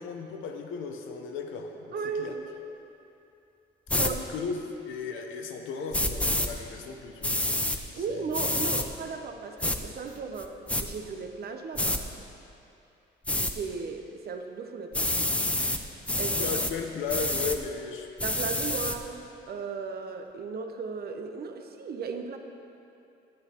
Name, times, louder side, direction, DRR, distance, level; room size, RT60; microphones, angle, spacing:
voice 1, 0.0-2.4 3.9-7.4 7.9-8.3 8.6-8.8 16.3-18.1, left 5 dB, 80° left, 4 dB, 0.7 m, -36 dB
voice 2, 1.9-2.4 4.0-4.3 7.9-12.0 13.3-15.3 16.2-16.6 18.2-22.4, right 5 dB, 50° right, 5 dB, 0.6 m, -36 dB
sound 1, 3.9-4.1 5.9-6.5 7.2-7.8 8.3-8.9 9.6-9.8 10.4-10.8 11.7-12.0 13.3-13.5 14.9-15.8 16.1-16.7 17.1-17.6 18.2-19.0, left 1 dB, 5° left, 0.4 m, -27 dB
8.5 x 7.7 x 2.9 m, 2.8 s
cardioid pair, 90°, 20 cm